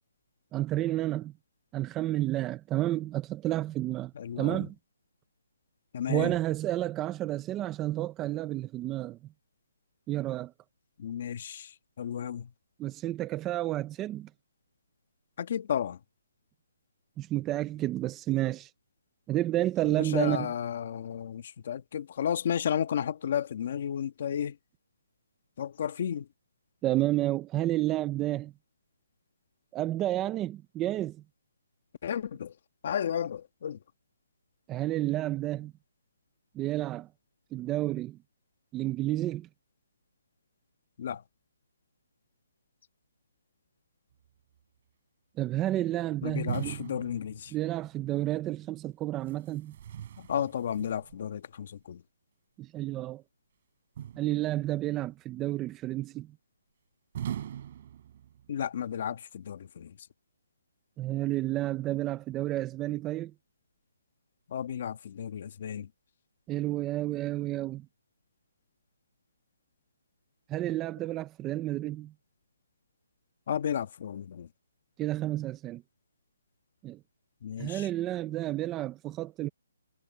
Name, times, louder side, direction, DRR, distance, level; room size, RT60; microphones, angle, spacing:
voice 1, 0.5-1.3 1.7-4.7 6.1-9.2 10.1-10.5 12.8-14.3 17.2-18.7 19.3-20.5 26.8-28.5 29.7-31.2 34.7-35.7 36.5-37.1 37.5-38.2 38.7-39.5 45.4-46.8 47.5-49.7 52.6-53.2 54.2-56.3 61.0-63.3 66.5-67.9 70.5-72.1 75.0-75.8 76.8-77.0 77.6-79.5, right 15 dB, 10° right, 0.5 m, -30 dB
voice 2, 4.2-4.6 5.9-6.3 11.0-11.7 12.0-12.5 15.4-16.0 20.1-24.5 25.6-26.2 32.0-32.5 32.8-33.8 41.0-41.2 46.2-47.5 50.3-52.0 58.5-59.9 64.5-65.9 73.5-74.5 77.4-77.9, left 9 dB, 35° left, 1.4 m, -33 dB
sound 1, 46.5-47.9 49.2-51.3 54.0-54.8 57.1-58.6, right 10 dB, 30° right, 4.0 m, -40 dB
hypercardioid pair, 175°, 0 cm